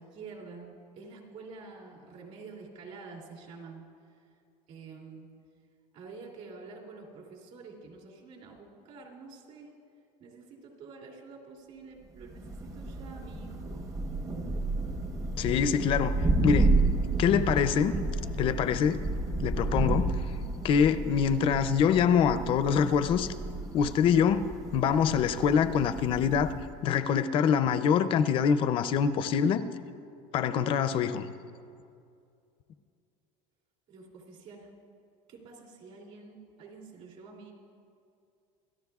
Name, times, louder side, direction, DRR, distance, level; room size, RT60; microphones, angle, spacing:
voice 1, 0.0-3.8 4.7-5.4 5.9-9.7 10.2-13.9 33.9-34.7 35.3-37.5, right 4 dB, 50° right, -1 dB, 2.7 m, -48 dB
Thunder, 12.2-26.8, right 2 dB, 20° right, 0.8 m, -31 dB
voice 2, 15.4-16.2 16.4-16.8 17.2-18.0 18.4-19.0 19.4-20.2 20.6-23.3 23.7-24.5 24.7-26.5 26.8-29.6 30.3-31.3, left 7 dB, 35° left, 12 dB, 0.5 m, -25 dB
27.5 x 13.5 x 2.4 m, 2.4 s
cardioid pair, 175°, 15 cm